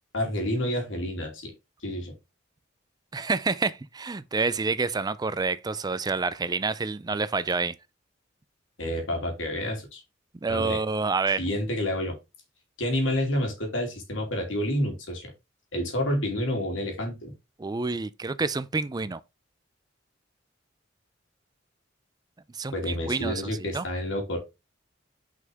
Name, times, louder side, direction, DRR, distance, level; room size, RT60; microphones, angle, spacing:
voice 1, 0.1-1.5 1.8-2.1 8.8-10.0 10.5-10.8 11.4-12.1 12.8-15.3 15.7-17.3 22.7-24.4, left 1 dB, 90° left, 3.0 m, -29 dB
voice 2, 3.1-7.7 10.4-11.4 17.6-19.2 22.5-23.8, right 4 dB, 20° right, 0.4 m, -28 dB
6.3 x 5.6 x 3.5 m
head